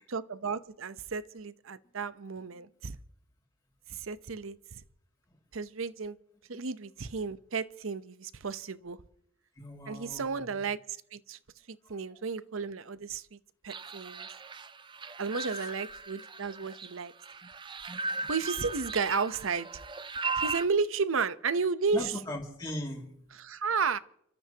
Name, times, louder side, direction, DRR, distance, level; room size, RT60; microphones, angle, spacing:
voice 1, 0.1-3.0 3.9-4.8 5.5-6.2 6.5-9.0 9.9-11.4 11.7-13.4 13.6-14.3 15.2-17.1 18.3-19.7 20.4-22.1 23.3-24.0, right 5 dB, 75° right, 0.8 m, -33 dB
voice 2, 9.6-10.4 11.8-12.0 15.5-15.7 21.9-23.1, left 1 dB, 20° left, 2.5 m, -39 dB
sound 1, 13.7-20.6, right 4 dB, 20° right, 0.5 m, -37 dB
29.5 x 13.5 x 2.9 m
head